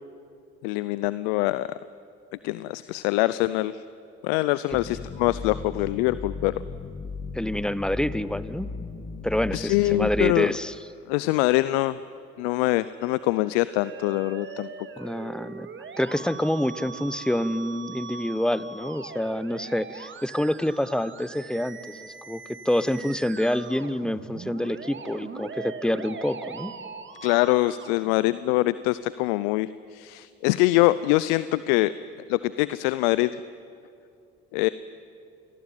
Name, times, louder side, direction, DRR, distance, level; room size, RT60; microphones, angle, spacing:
voice 1, 0.6-1.7 2.4-3.8 4.2-6.5 9.5-10.5 11.1-12.0 12.4-14.7 15.0-15.1 27.2-31.9 32.3-33.4 34.5-34.7, left 18 dB, 75° left, 16 dB, 0.6 m, -24 dB
sound 1, 4.7-10.3, left 4 dB, 30° left, 1.8 m, -36 dB
voice 2, 7.3-8.7 9.2-10.7 15.0-15.7 16.0-26.7, left 1 dB, 5° left, 15 dB, 1.1 m, -27 dB
Musical instrument, 12.9-28.9, right 6 dB, 40° right, 2.3 m, -41 dB
28.0 x 20.0 x 9.3 m, 2.6 s
hypercardioid pair, 60°, 29 cm